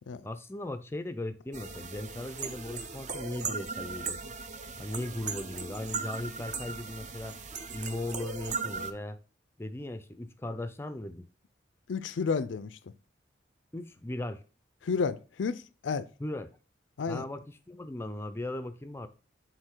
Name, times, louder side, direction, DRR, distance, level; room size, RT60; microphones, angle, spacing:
voice 1, 0.2-4.2 4.8-7.4 7.7-9.2 9.6-11.3 13.7-14.4 16.2-16.5 17.1-19.1, left 1 dB, 15° left, 0.4 m, -38 dB
sound 1, 1.5-8.9, right 5 dB, 40° right, 0.6 m, -38 dB
voice 2, 11.9-12.8 14.8-16.1 17.0-17.3, left 5 dB, 85° left, 0.4 m, -31 dB
6.6 x 4.0 x 4.5 m
head